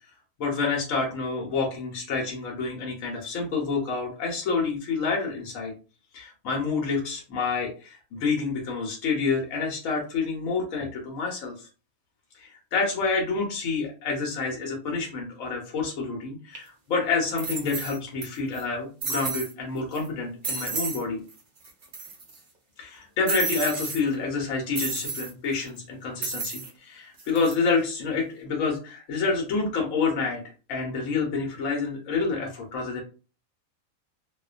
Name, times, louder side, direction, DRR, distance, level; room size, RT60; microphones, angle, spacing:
voice 1, 0.4-5.7 6.1-11.7 12.3-21.2 22.8-30.4 30.7-33.0, left 4 dB, 70° left, -1 dB, 1.1 m, -28 dB
sound 1, 16.6-16.7 17.4-18.3 18.5-18.6 19.0-19.5 20.0-20.1 20.4-21.0 21.3-21.4 21.6-22.4 23.3-24.0 24.8-25.3 26.2-26.7 27.2-27.5, right 4 dB, 65° right, 0.4 m, -31 dB
2.5 x 2.1 x 2.4 m, 0.35 s
omnidirectional pair, 1.5 m